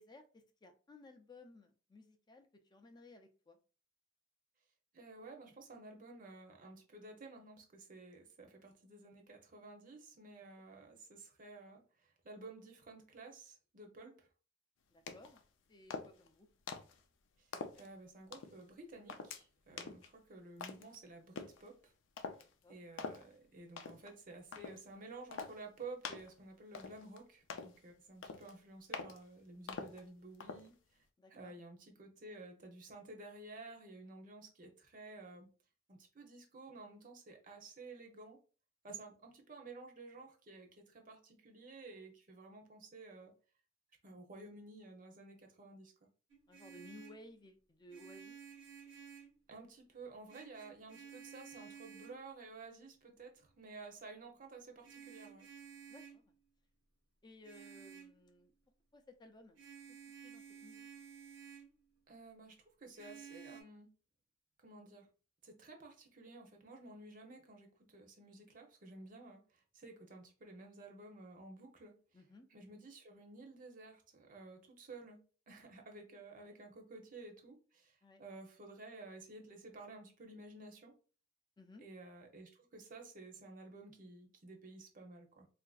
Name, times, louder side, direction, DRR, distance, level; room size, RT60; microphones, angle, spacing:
voice 1, 0.0-3.6 14.9-15.4 15.7-16.5 19.7-20.0 22.4-22.8 31.2-31.5 46.5-48.4 55.9-56.2 57.2-58.5 58.9-59.6 59.9-60.9 72.1-72.5 76.4-76.6 78.0-78.2 81.6-81.8, left 2 dB, 20° left, 0.4 m, -58 dB
voice 2, 4.9-14.3 17.4-17.5 17.8-21.9 22.7-35.5 35.9-38.4 38.8-43.3 44.0-45.9 49.5-55.5 62.1-63.9 64.6-65.1 65.4-71.9 72.5-75.2 75.5-80.9 81.8-85.5, right 3 dB, 45° right, 0.7 m, -53 dB
sound 1, 15.1-15.4 15.9-16.3 16.7-17.0 17.5-17.9 18.3-18.6 19.1-19.4 19.8-20.1 20.6-21.0 21.4-21.6 22.2-22.4 23.0-23.2 23.8-24.1 24.5-24.8 25.3-25.6 26.0-26.3 26.7-27.2 27.5-27.8 28.2-28.5 28.9-29.2 29.7-30.0 30.4-30.7, left 5 dB, 85° left, 0.4 m, -45 dB
Vehicle horn car horn honking, 46.3-47.3 47.9-49.4 50.3-52.2 54.8-56.2 57.4-58.2 59.5-61.7 62.9-63.6, right 7 dB, 75° right, 0.8 m, -54 dB
3.8 x 2.5 x 2.3 m
head